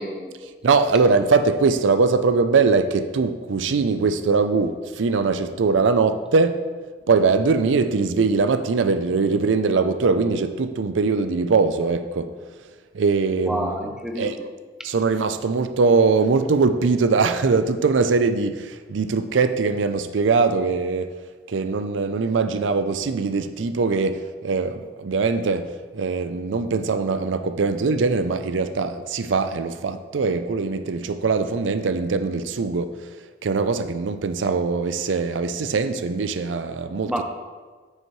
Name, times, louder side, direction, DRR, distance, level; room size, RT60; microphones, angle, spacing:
voice 1, 0.0-0.5 13.4-14.5 37.0-37.2, equal, 5° right, 0.6 m, -29 dB
voice 2, 0.6-6.6 7.1-12.3 12.9-13.7 14.2-14.3 14.8-21.2 21.5-33.0 33.4-37.2, right 4 dB, 85° right, 0.5 m, -21 dB
8.9 x 6.5 x 3.1 m
head